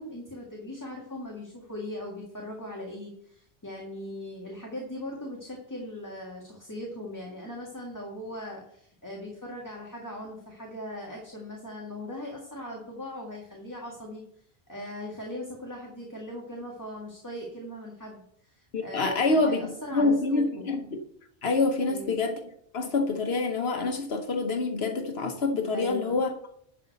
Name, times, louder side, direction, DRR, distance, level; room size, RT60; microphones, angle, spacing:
voice 1, 0.0-14.2 14.7-20.7 21.8-22.2 25.7-26.2, left 1 dB, 20° left, -2 dB, 1.9 m, -39 dB
voice 2, 18.7-20.9 21.4-22.4 22.7-26.3, left 3 dB, 75° left, 5 dB, 1.3 m, -26 dB
11.0 x 4.9 x 6.6 m, 0.67 s
omnidirectional pair, 1.0 m